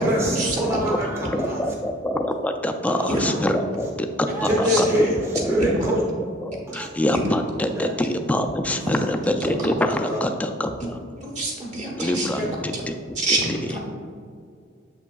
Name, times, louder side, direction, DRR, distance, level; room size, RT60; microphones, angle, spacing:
voice 1, 0.0-1.7 2.9-3.2 3.7-3.9 4.3-6.0 6.7-6.9 7.7-7.9 8.9-9.2 10.0-10.2 12.3-12.5, right 1 dB, 15° right, -4 dB, 0.9 m, -25 dB
voice 2, 1.3-4.9 5.4-5.7 6.4-11.0 12.0-13.6, left 1 dB, 10° left, 6 dB, 0.3 m, -25 dB
voice 3, 5.6-5.9 7.1-7.2 11.2-12.3 12.7-12.8 13.2-13.8, right 2 dB, 40° right, -2 dB, 1.2 m, -26 dB
7.4 x 5.8 x 2.3 m, 2.2 s
head